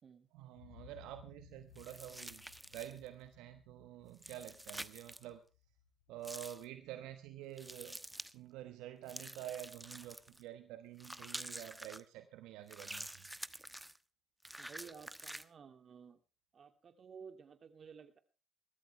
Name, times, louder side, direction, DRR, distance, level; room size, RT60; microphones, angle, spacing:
voice 1, 0.3-2.5 2.7-5.4 6.1-8.0 8.3-13.3, right 13 dB, 80° right, 9 dB, 1.1 m, -49 dB
sound 1, 0.5-8.4 8.9-9.0, left 11 dB, 90° left, 1.8 m, -63 dB
sound 2, 1.7-3.1 4.1-5.2 6.2-6.6 7.6-8.3 9.1-10.4 11.0-12.0 12.7-14.0 14.4-15.4, right 1 dB, 10° right, 1.1 m, -48 dB
voice 2, 14.6-16.2 16.5-18.2, right 6 dB, 50° right, 8 dB, 2.5 m, -54 dB
22.0 x 13.5 x 3.3 m, 0.33 s
hypercardioid pair, 50°, 0 cm